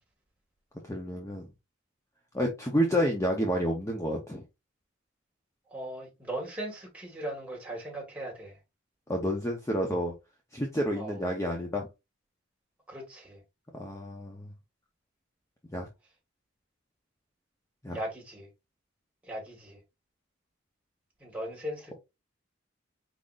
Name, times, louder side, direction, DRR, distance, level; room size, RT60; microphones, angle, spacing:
voice 1, 0.8-1.5 2.3-4.4 9.1-10.1 10.5-11.9 13.8-14.5 15.7-15.9 17.8-18.0, equal, 15° left, 0.7 m, -29 dB
voice 2, 5.7-8.6 10.9-11.2 12.9-13.4 17.9-18.5 19.2-19.8 21.2-22.0, right 1 dB, 5° right, 1.8 m, -38 dB
4.9 x 3.9 x 2.4 m
head